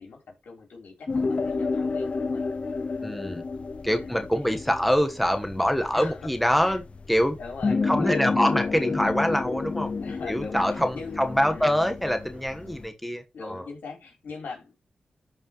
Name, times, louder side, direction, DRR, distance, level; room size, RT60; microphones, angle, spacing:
voice 1, 0.0-2.5 3.9-4.2 5.9-6.3 6.6-6.8 7.4-8.3 10.0-11.9 13.3-14.7, left 4 dB, 85° left, 3.8 m, -41 dB
sound 1, 1.1-12.9, left 4 dB, 45° left, 0.4 m, -30 dB
voice 2, 3.0-3.4 3.8-6.8 7.1-7.4 7.7-9.9 10.3-13.6, equal, ahead, 1.2 m, -25 dB
13.5 x 5.1 x 3.1 m
cardioid pair, 65°, 3 cm